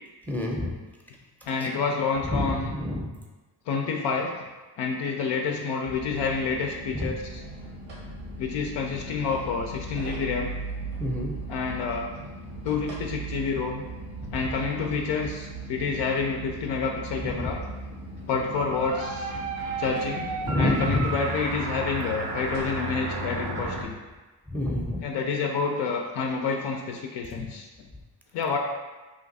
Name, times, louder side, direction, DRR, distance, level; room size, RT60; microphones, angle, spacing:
voice 1, 0.3-0.7 2.3-3.1 6.9-7.1 11.0-11.3 17.4-17.5 20.4-21.1 24.5-25.0 27.4-27.5, left 1 dB, 5° left, -1 dB, 0.6 m, -27 dB
voice 2, 1.5-2.7 3.7-4.3 4.8-7.4 8.4-10.5 11.5-12.1 12.6-13.8 14.3-17.6 18.3-19.3 19.8-24.0 25.0-27.7 28.3-28.6, left 5 dB, 75° left, 1 dB, 0.5 m, -28 dB
sound 1, 5.9-23.9, right 1 dB, 90° right, 1.1 m, -38 dB
sound 2, 18.8-23.8, right 4 dB, 50° right, 0.5 m, -33 dB
2.8 x 2.4 x 4.0 m, 1.2 s
supercardioid pair, 60°, 43 cm